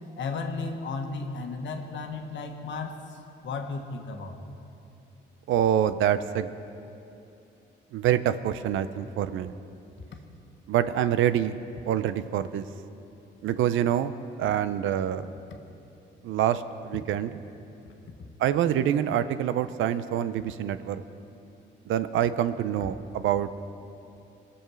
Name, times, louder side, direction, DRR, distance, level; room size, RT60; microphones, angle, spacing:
voice 1, 0.2-4.5 10.1-10.2 17.8-17.9, left 4 dB, 70° left, 4 dB, 1.3 m, -35 dB
voice 2, 5.5-6.5 7.9-9.5 10.7-11.6 11.9-12.6 13.4-14.1 14.4-15.3 16.2-17.3 18.4-21.0 21.9-23.5, right 10 dB, 80° right, 13 dB, 0.6 m, -26 dB
21.0 x 7.1 x 6.2 m, 2.8 s
cardioid pair, 90°, 20 cm